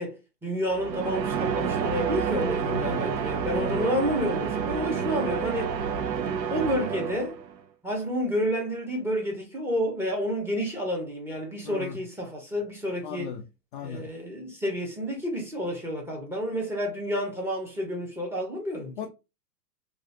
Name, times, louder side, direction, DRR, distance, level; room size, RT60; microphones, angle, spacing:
voice 1, 0.0-5.7 6.5-7.4 7.8-13.3 13.8-18.9, equal, 5° right, 0.8 m, -30 dB
sound 1, 0.7-7.6, right 7 dB, 85° right, 0.7 m, -29 dB
voice 2, 2.6-3.1 3.5-3.9 11.6-12.0 13.0-13.5 13.7-14.1 19.0-19.1, left 6 dB, 35° left, 0.4 m, -36 dB
3.0 x 2.5 x 2.7 m
hypercardioid pair, 115°, 49 cm